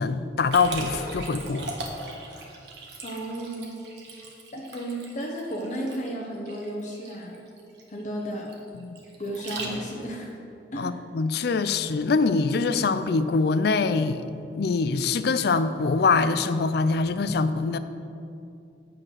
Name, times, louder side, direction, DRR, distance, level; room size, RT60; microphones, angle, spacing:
voice 1, 0.0-1.7 8.7-9.0 10.7-14.2 14.5-17.8, left 4 dB, 60° left, 12 dB, 0.4 m, -24 dB
Liquid, 0.5-10.1, right 2 dB, 65° right, 1.4 m, -39 dB
voice 2, 3.0-3.7 4.5-7.4 7.9-8.5 9.2-10.3 10.7-10.9, right 1 dB, 40° left, -1 dB, 0.9 m, -33 dB
9.0 x 5.8 x 6.4 m, 2.6 s
head